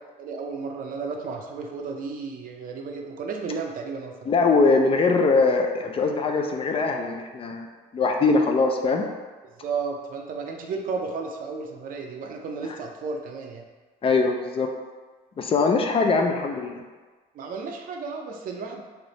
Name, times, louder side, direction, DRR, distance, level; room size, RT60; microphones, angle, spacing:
voice 1, 0.2-4.1 9.4-13.6 17.3-18.8, right 4 dB, 55° right, 2 dB, 0.6 m, -33 dB
voice 2, 4.3-7.7 7.9-9.0 14.0-14.7 15.4-16.8, left 4 dB, 35° left, 3 dB, 0.4 m, -22 dB
3.3 x 2.7 x 4.0 m, 1.3 s
cardioid pair, 110°, 17 cm